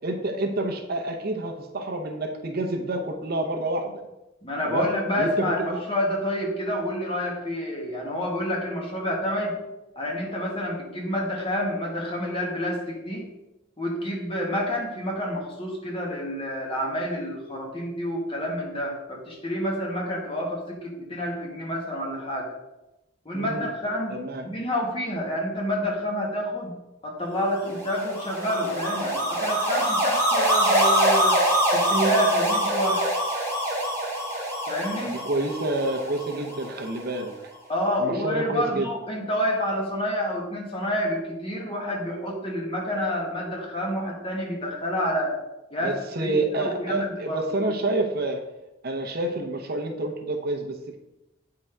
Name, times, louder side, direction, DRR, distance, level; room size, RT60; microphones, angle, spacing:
voice 1, 0.0-4.0 4.6-4.9 5.2-5.8 23.3-23.7 24.1-24.5 35.0-37.3 38.0-38.9 45.8-48.4 48.8-51.0, right 2 dB, 50° right, 4 dB, 0.7 m, -28 dB
voice 2, 4.4-9.5 9.9-13.3 13.8-22.5 23.2-24.2 24.4-26.7 27.0-31.4 31.7-33.1 34.7-35.2 37.7-45.4 45.7-47.7, equal, 30° left, -1 dB, 1.6 m, -28 dB
sound 1, 27.6-36.9, right 1 dB, 10° left, 2.2 m, -24 dB
8.7 x 3.8 x 4.5 m, 0.98 s
head